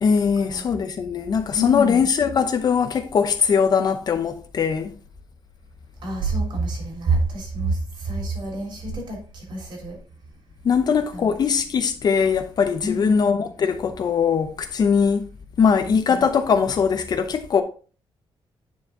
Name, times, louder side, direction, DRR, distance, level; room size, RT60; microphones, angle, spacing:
voice 1, 0.0-4.9 10.6-15.3 15.6-17.6, left 6 dB, 45° left, 0.8 m, -21 dB
voice 2, 1.5-2.1 6.0-10.0 11.1-11.3 12.8-13.2 15.9-16.2, right 2 dB, 55° right, 3.2 m, -27 dB
9.5 x 4.5 x 3.7 m
cardioid pair, 145°, 9 cm